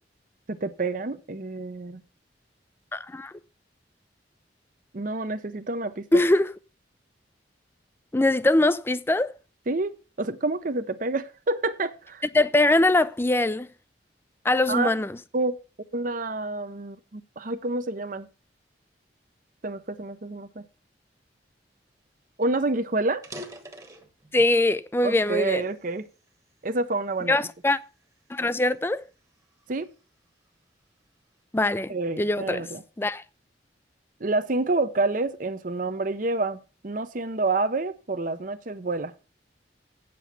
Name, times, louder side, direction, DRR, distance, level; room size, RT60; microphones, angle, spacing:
voice 1, 0.5-2.0 4.9-6.2 9.7-12.2 14.7-14.9 15.3-15.6 15.9-18.3 19.6-20.6 22.4-23.2 25.0-26.1 26.6-27.4 29.7-29.9 31.9-32.8 34.2-39.1, right 3 dB, 50° right, 0.7 m, -28 dB
voice 2, 2.9-3.3 6.1-6.5 8.1-9.3 12.3-13.7 14.4-15.2 24.3-25.6 27.3-27.8 28.3-29.0 31.5-32.6 33.0-33.2, left 2 dB, 15° left, 0.4 m, -22 dB
sound 1, 22.0-22.1 22.4-22.6 23.1-24.7 25.2-26.5 27.1-27.4 28.0-30.0, equal, 20° right, 1.2 m, -45 dB
8.2 x 7.7 x 5.7 m
head